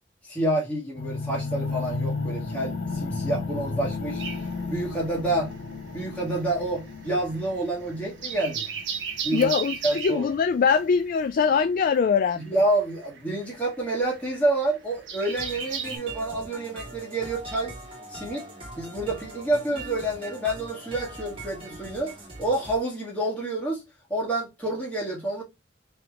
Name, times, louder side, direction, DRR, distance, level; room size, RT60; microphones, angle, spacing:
voice 1, 0.2-4.2 4.7-5.5 5.9-8.7 9.2-9.5 9.8-10.2 12.4-17.7 18.1-18.5 18.8-22.1 22.4-23.8 24.1-25.4, right 1 dB, 5° left, 1.4 m, -28 dB
sound 1, 1.0-10.9, left 3 dB, 75° left, 0.9 m, -34 dB
sound 2, 4.2-5.6 5.9-16.0, right 7 dB, 70° right, 1.1 m, -36 dB
voice 2, 9.3-12.5, left 6 dB, 50° left, 0.3 m, -22 dB
sound 3, 15.4-22.8, right 2 dB, 30° right, 1.3 m, -41 dB
3.4 x 3.1 x 3.5 m
head